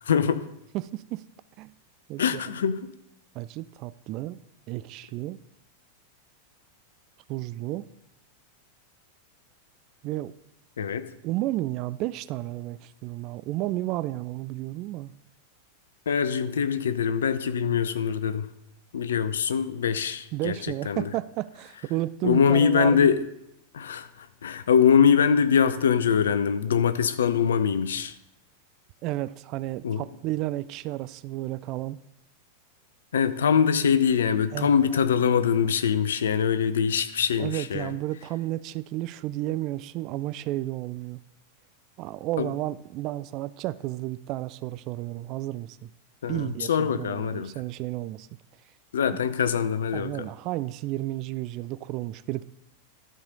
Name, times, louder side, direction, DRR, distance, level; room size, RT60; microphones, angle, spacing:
voice 1, 0.1-0.4 2.2-2.8 10.8-11.1 16.1-18.5 18.9-20.6 20.9-21.1 22.2-23.2 23.7-28.1 29.8-30.0 33.1-37.9 42.4-42.5 46.2-47.5 48.9-50.1, left 7 dB, 65° left, 12 dB, 0.6 m, -23 dB
voice 2, 0.7-1.2 1.6-1.7 2.1-2.4 3.3-4.4 4.7-5.4 7.3-7.9 10.0-10.3 11.2-15.2 20.3-23.1 29.0-32.0 34.5-34.7 37.4-41.2 42.0-45.9 46.3-48.3 49.1-49.2 49.9-52.4, right 16 dB, 40° right, 17 dB, 0.3 m, -32 dB
12.0 x 4.9 x 5.2 m, 0.81 s
figure-of-eight pair, 90°, 0 cm